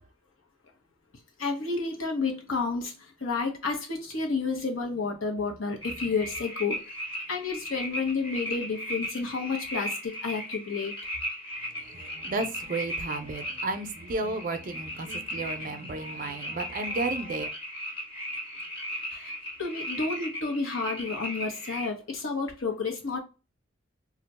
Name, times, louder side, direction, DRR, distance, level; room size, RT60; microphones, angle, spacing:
voice 1, 1.4-2.9 3.2-6.8 7.3-10.9 19.1-19.3 19.6-23.2, left 4 dB, 90° left, 0.9 m, -30 dB
sound 1, 5.8-21.9, equal, 25° left, 1.1 m, -37 dB
voice 2, 11.8-17.5, right 2 dB, 45° right, 0.4 m, -33 dB
2.4 x 2.2 x 4.0 m
head